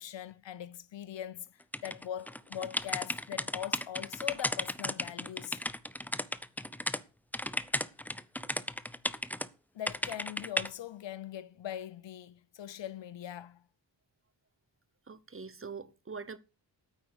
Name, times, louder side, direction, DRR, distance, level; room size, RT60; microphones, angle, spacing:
voice 1, 0.0-5.6 9.7-13.7, left 10 dB, 80° left, 0.7 m, -41 dB
sound 1, 1.7-7.0 7.3-9.5 9.9-10.7, left 1 dB, 5° left, 0.5 m, -34 dB
voice 2, 15.1-16.4, right 5 dB, 30° right, 0.8 m, -43 dB
9.3 x 8.4 x 6.4 m
wide cardioid pair, 115°, 44 cm